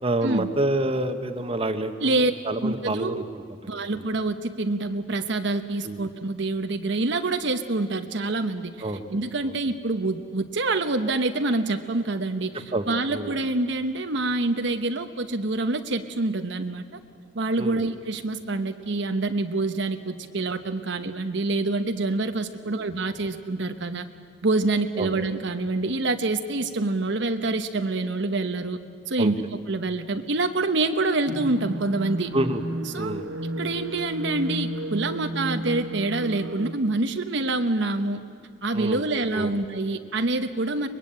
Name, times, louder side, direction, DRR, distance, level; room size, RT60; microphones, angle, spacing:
voice 1, 0.0-2.1 2.4-4.0 5.8-6.0 8.8-9.0 9.4-9.5 12.5-13.4 17.6-17.8 22.7-22.8 25.0-25.1 29.2-29.3 32.3-32.6 33.0-33.2 38.7-39.5, right 1 dB, 30° right, 7 dB, 1.3 m, -28 dB
voice 2, 2.0-2.3 2.6-3.3 3.7-16.8 17.3-24.1 24.4-28.8 29.1-32.3 32.9-33.2 33.6-38.2 38.6-40.9, right 2 dB, 65° right, 7 dB, 1.0 m, -26 dB
sound 1, 31.3-36.7, right 1 dB, 90° right, 1.1 m, -33 dB
24.0 x 21.5 x 9.0 m, 2.3 s
head